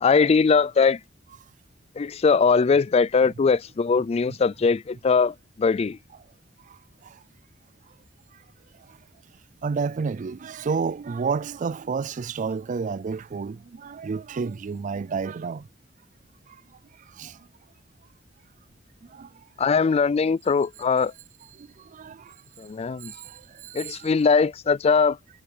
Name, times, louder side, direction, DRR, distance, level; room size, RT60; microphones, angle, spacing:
voice 1, 0.0-1.0 2.0-6.0 19.6-21.1 22.6-23.1 23.7-25.2, left 5 dB, 30° left, 0.3 m, -21 dB
voice 2, 9.6-15.7 17.1-17.4 19.1-19.3 21.5-22.3 23.0-24.3, right 5 dB, 40° right, 0.4 m, -31 dB
head